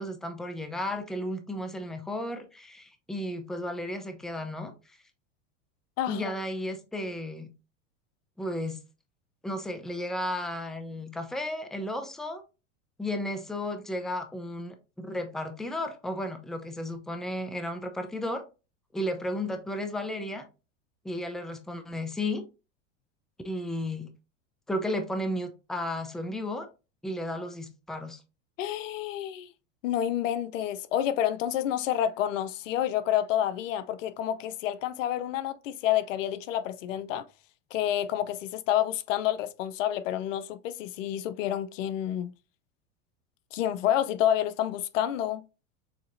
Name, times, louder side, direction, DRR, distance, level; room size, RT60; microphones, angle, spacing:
voice 1, 0.0-4.7 6.1-7.5 8.4-8.8 9.4-12.4 13.0-18.4 18.9-20.4 21.0-22.5 23.4-24.1 24.7-26.7 27.0-28.2, left 1 dB, ahead, 0.6 m, -33 dB
voice 2, 28.6-29.5 29.8-37.2 37.7-42.3 43.5-45.4, left 11 dB, 75° left, 0.6 m, -29 dB
7.1 x 2.9 x 2.6 m
hypercardioid pair, 110°, 39 cm